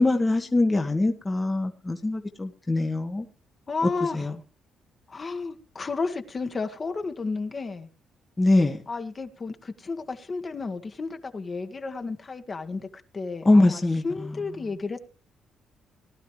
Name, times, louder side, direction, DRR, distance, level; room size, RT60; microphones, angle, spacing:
voice 1, 0.0-3.3 4.1-4.3 8.4-8.8 13.4-14.4, left 2 dB, 20° left, 1.3 m, -23 dB
voice 2, 3.7-4.3 5.1-7.9 8.9-12.9 13.1-15.0, left 4 dB, 35° left, 1.5 m, -32 dB
19.0 x 11.5 x 3.1 m
cardioid pair, 90°, 0 cm